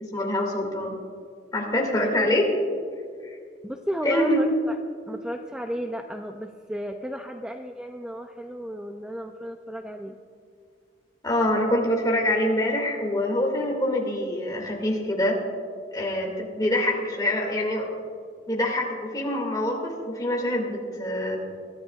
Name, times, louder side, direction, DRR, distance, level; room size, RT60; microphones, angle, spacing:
voice 1, 0.1-1.0 1.5-2.5 3.2-3.3 4.0-4.4 11.2-15.4 15.9-17.9 18.5-21.4, left 1 dB, 20° left, 0 dB, 2.2 m, -25 dB
voice 2, 3.6-4.8 5.1-10.2, equal, 5° right, 4 dB, 0.4 m, -33 dB
22.5 x 13.5 x 2.4 m, 2.2 s
head